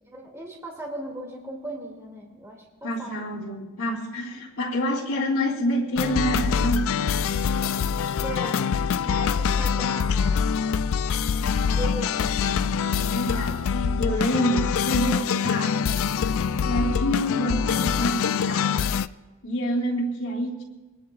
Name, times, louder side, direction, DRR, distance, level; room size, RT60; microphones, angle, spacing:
voice 1, 0.1-3.2 8.2-8.7 9.0-10.5 11.7-12.4, right 1 dB, 15° right, -2 dB, 2.3 m, -37 dB
voice 2, 2.8-7.1 12.9-16.1 16.6-19.0 19.4-20.6, equal, 85° left, -2 dB, 3.4 m, -27 dB
sound 1, 6.0-19.1, left 6 dB, 65° left, 0.4 m, -24 dB
24.0 x 19.0 x 2.4 m, 1.2 s
head